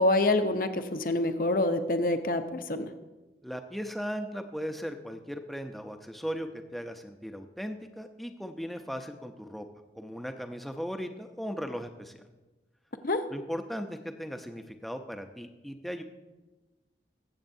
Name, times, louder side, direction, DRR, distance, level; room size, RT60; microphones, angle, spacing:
voice 1, 0.0-2.9 13.0-13.2, left 2 dB, 50° left, 8 dB, 0.7 m, -26 dB
voice 2, 3.4-9.6 10.0-12.2 13.3-16.0, equal, ahead, 6 dB, 0.6 m, -37 dB
22.0 x 7.8 x 2.7 m, 1.1 s
head